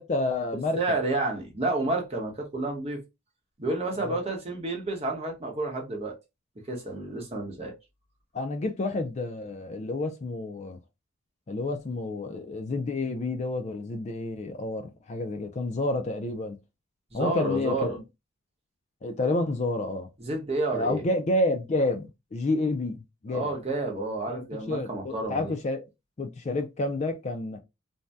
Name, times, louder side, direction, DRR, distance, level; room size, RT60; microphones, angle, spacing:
voice 1, 0.0-0.8 4.0-4.2 8.3-10.8 11.5-16.6 17.1-18.0 19.0-20.1 20.7-23.5 24.3-25.8 26.2-27.6, left 2 dB, 35° left, 0.4 m, -29 dB
voice 2, 0.7-3.0 3.6-6.2 6.6-7.7 17.1-18.0 20.2-21.0 23.3-25.5, right 2 dB, 30° right, 0.9 m, -30 dB
2.6 x 2.2 x 3.3 m
head